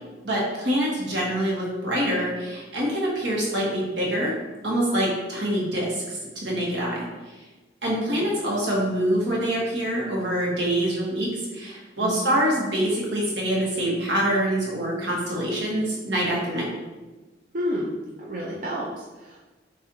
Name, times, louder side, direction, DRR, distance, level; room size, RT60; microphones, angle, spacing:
voice 1, 0.2-4.3 4.6-7.1 7.8-16.7, right 1 dB, 80° right, -4 dB, 1.3 m, -25 dB
voice 2, 12.0-12.3 17.5-17.9 18.2-19.4, equal, 50° right, -4 dB, 0.5 m, -30 dB
6.6 x 2.4 x 2.7 m, 1.2 s
head